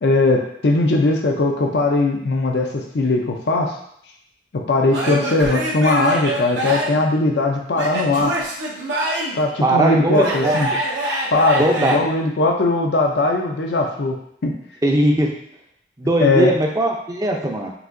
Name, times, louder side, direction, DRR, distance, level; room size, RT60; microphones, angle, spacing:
voice 1, 0.0-3.7 4.5-8.3 9.4-10.7 11.3-14.2 14.4-14.5 16.2-16.5, left 2 dB, 65° left, 2 dB, 0.5 m, -19 dB
Male speech man speaking / Yell / Laughter, 4.9-7.0 7.7-9.4 10.1-11.9, right 1 dB, 85° right, 1.0 m, -24 dB
voice 2, 9.6-10.6 11.6-12.0 14.8-15.3 16.0-17.7, right 1 dB, 20° right, 1 dB, 0.5 m, -19 dB
5.9 x 2.7 x 2.6 m, 0.72 s
head